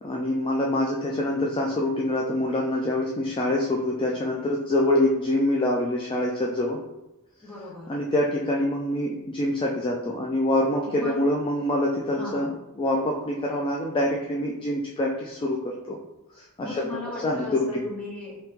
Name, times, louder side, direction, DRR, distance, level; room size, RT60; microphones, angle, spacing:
voice 1, 0.0-6.8 7.9-12.5 12.8-16.0 16.3-16.8 17.2-17.8, left 1 dB, 25° left, -1 dB, 0.3 m, -25 dB
voice 2, 7.4-7.9 10.9-11.2 12.1-12.5 16.6-18.3, left 2 dB, 5° left, -7 dB, 1.1 m, -37 dB
3.0 x 2.8 x 3.4 m, 0.93 s
head